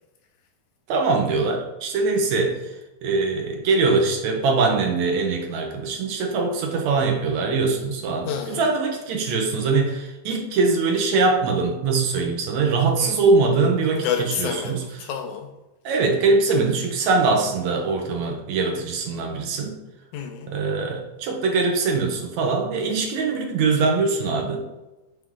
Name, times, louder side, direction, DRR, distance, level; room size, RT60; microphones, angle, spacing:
voice 1, 0.9-2.6 3.0-14.8 15.9-19.8 20.5-24.6, right 4 dB, 70° right, 2 dB, 2.0 m, -22 dB
voice 2, 8.3-8.6 13.0-13.3 14.0-15.5 20.1-20.5, left 7 dB, 80° left, 4 dB, 1.8 m, -29 dB
9.2 x 3.6 x 3.7 m, 1.0 s
omnidirectional pair, 3.9 m